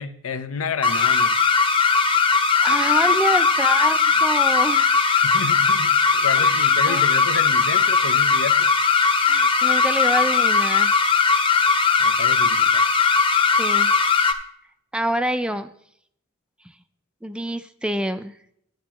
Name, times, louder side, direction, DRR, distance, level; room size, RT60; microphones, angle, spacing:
voice 1, 0.0-1.3 5.2-8.7 12.0-12.8, left 6 dB, 75° left, 0.7 m, -30 dB
sound 1, 0.8-14.3, left 5 dB, 25° left, 0.8 m, -19 dB
voice 2, 2.6-5.2 6.4-7.0 9.2-10.9 13.6-13.9 14.9-15.7 17.2-18.3, right 1 dB, 5° right, 0.3 m, -26 dB
10.5 x 10.5 x 3.0 m
head